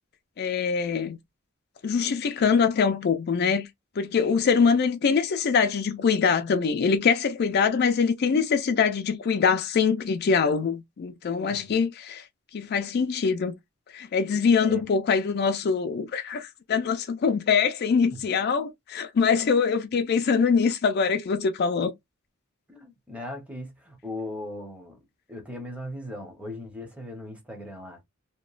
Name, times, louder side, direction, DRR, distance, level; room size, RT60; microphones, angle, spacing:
voice 1, 0.4-1.2 1.8-3.7 4.0-12.2 12.5-13.5 13.9-21.9, left 5 dB, 50° left, 0.4 m, -23 dB
voice 2, 22.7-25.0 25.3-28.0, left 1 dB, 5° right, 0.7 m, -38 dB
2.9 x 2.2 x 2.3 m
head